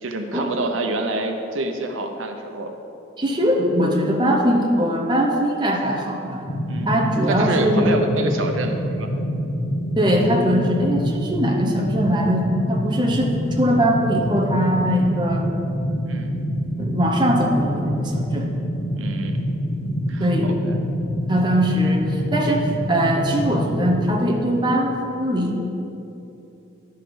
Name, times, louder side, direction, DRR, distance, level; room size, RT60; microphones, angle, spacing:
voice 1, 0.0-2.7 6.7-7.0 7.3-9.1 16.0-16.4 18.9-19.5 20.1-20.8, right 2 dB, 85° right, 5 dB, 0.8 m, -27 dB
voice 2, 3.2-6.5 6.9-8.0 10.0-15.5 16.8-18.5 20.2-20.5 21.3-25.6, equal, 20° right, 0 dB, 0.8 m, -21 dB
sound 1, 6.5-24.2, equal, 60° left, 1.0 m, -26 dB
11.5 x 5.8 x 5.1 m, 2.9 s
head